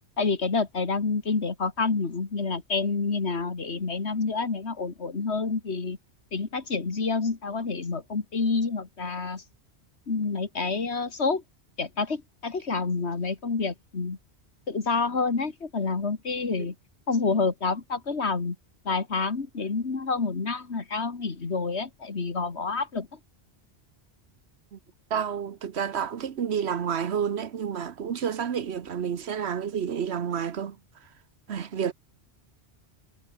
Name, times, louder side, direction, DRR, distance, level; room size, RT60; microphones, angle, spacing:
voice 1, 0.2-6.0 6.3-9.4 10.1-11.4 11.8-14.2 14.7-16.7 17.1-18.6 18.8-23.1, left 4 dB, 85° left, 2.4 m, -28 dB
voice 2, 25.1-30.8 31.5-31.9, right 7 dB, 80° right, 1.3 m, -30 dB
omnidirectional pair, 1.1 m